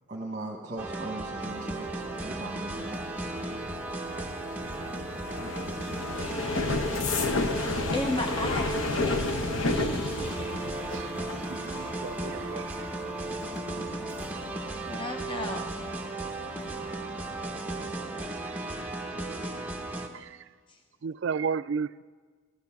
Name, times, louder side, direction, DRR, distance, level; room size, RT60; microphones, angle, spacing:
voice 1, 0.1-3.6, right 2 dB, 35° right, 0 dB, 1.1 m, -39 dB
sound 1, 0.8-20.1, right 2 dB, 10° right, 0.9 m, -35 dB
sound 2, 1.4-16.1 16.4-16.8 17.1-17.5, left 2 dB, 75° left, 0.9 m, -33 dB
voice 2, 5.4-5.9 7.1-9.3 9.7-10.8 11.7-11.9 14.9-15.7 20.7-20.8, left 1 dB, 25° left, 3 dB, 0.7 m, -36 dB
voice 3, 11.5-12.9 20.1-20.4 21.0-22.0, right 6 dB, 60° right, 15 dB, 0.3 m, -33 dB
14.5 x 14.0 x 5.9 m, 1.5 s
head